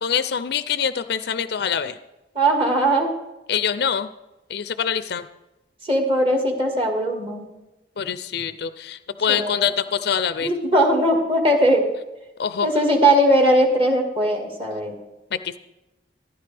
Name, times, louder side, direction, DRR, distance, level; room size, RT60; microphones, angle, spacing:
voice 1, 0.0-2.0 3.5-4.1 4.5-5.3 8.0-10.5 12.4-12.7 15.3-15.5, left 7 dB, 65° left, 12 dB, 0.5 m, -24 dB
voice 2, 2.4-3.1 5.8-7.5 9.3-9.7 10.4-11.8 12.6-15.0, right 1 dB, 35° right, 1 dB, 2.1 m, -19 dB
14.5 x 11.0 x 3.4 m, 1.0 s
head